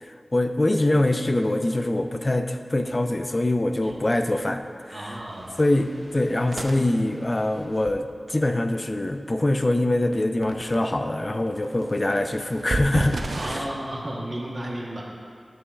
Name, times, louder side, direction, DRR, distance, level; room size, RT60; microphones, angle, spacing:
voice 1, 0.0-4.6 4.9-5.2 5.6-13.7, left 1 dB, 35° left, 7 dB, 0.5 m, -24 dB
sound 1, 3.8-3.9 4.3-4.6 5.1-7.9 10.1-10.2 10.4-10.8 11.6-13.6, right 2 dB, 85° right, 0.6 m, -33 dB
voice 2, 4.9-5.5 13.4-15.0, right 1 dB, 50° right, -3 dB, 1.1 m, -33 dB
9.7 x 7.7 x 2.4 m, 2.2 s
wide cardioid pair, 55°, 0 cm